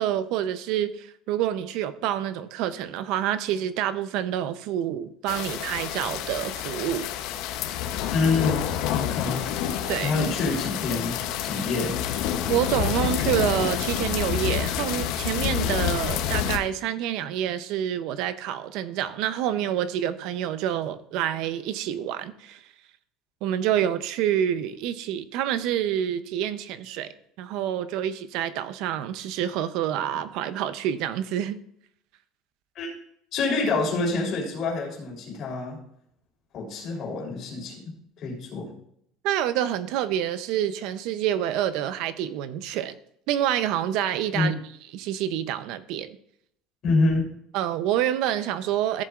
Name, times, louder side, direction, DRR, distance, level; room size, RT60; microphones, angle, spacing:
voice 1, 0.0-7.1 9.9-10.2 12.5-22.6 23.4-27.1 27.4-31.6 39.2-43.0 43.3-44.5 44.9-46.2 47.5-49.0, right 11 dB, 55° right, 0.6 m, -27 dB
sound 1, 5.3-16.6, left 10 dB, 60° left, 0.7 m, -28 dB
voice 2, 8.1-9.4 10.0-11.2 11.4-12.0 32.8-32.9 33.3-35.8 36.5-38.7 44.3-44.6 46.8-47.3, left 3 dB, 40° left, 3.4 m, -26 dB
14.5 x 7.4 x 2.4 m
cardioid pair, 175°, 0 cm